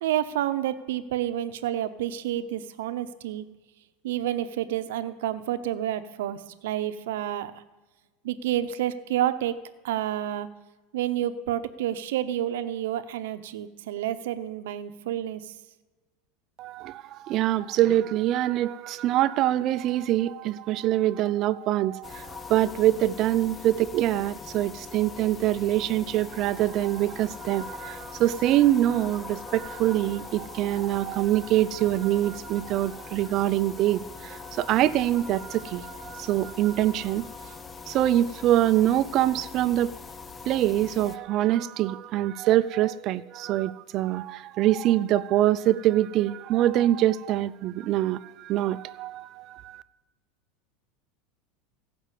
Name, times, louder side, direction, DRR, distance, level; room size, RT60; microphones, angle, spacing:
voice 1, 0.0-3.4 4.0-7.5 8.2-9.6 9.8-10.5 10.9-15.4, right 12 dB, 85° right, 11 dB, 0.8 m, -29 dB
voice 2, 16.6-37.3 37.9-39.9 40.5-49.8, right 13 dB, 40° right, 15 dB, 0.5 m, -24 dB
sound 1, 22.0-41.2, left 5 dB, 15° left, 0.7 m, -42 dB
16.5 x 6.1 x 8.3 m, 1.2 s
supercardioid pair, 140°, 0 cm